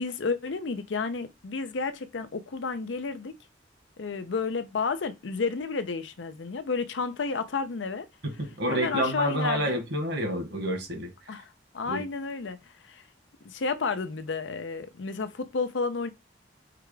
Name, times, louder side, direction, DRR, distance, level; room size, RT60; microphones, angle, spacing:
voice 1, 0.0-3.4 4.0-8.1 8.7-9.8 11.3-13.0 13.4-16.1, left 4 dB, 85° left, 0.6 m, -31 dB
voice 2, 8.2-11.1 11.9-12.1, right 1 dB, 70° right, 1.7 m, -29 dB
4.8 x 2.3 x 4.8 m
head